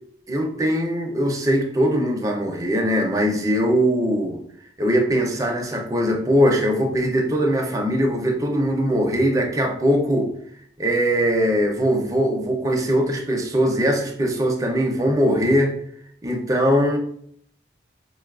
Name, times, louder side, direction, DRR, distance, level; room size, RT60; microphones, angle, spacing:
voice 1, 0.3-4.4 4.8-10.3 10.8-15.8 16.2-17.0, equal, 20° right, 1 dB, 0.5 m, -21 dB
4.9 x 2.3 x 2.3 m, 0.65 s
head